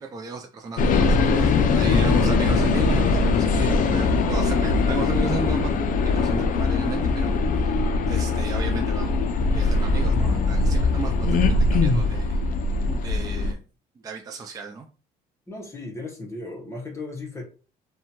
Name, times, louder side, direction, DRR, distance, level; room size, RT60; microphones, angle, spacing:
voice 1, 0.0-5.7 6.0-7.8 8.1-9.2 9.5-12.4 12.9-13.6 14.0-14.9, right 4 dB, 20° right, 3 dB, 0.3 m, -34 dB
sound 1, 0.8-13.5, left 3 dB, 50° left, 0.4 m, -21 dB
voice 2, 1.7-2.0 15.5-17.4, left 2 dB, 15° left, 1 dB, 0.9 m, -35 dB
2.6 x 2.2 x 2.8 m, 0.36 s
cardioid pair, 110°, 17 cm